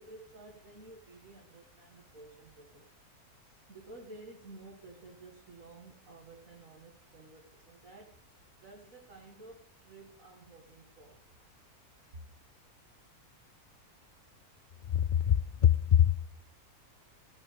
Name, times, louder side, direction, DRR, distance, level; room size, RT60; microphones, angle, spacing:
voice 1, 0.0-2.9 3.4-8.2 8.6-11.2 12.1-12.2, right 2 dB, 60° right, -1 dB, 2.3 m, -52 dB
voice 2, 14.9-16.2, left 10 dB, 70° left, 11 dB, 0.4 m, -24 dB
16.0 x 8.8 x 5.1 m, 0.70 s
omnidirectional pair, 1.6 m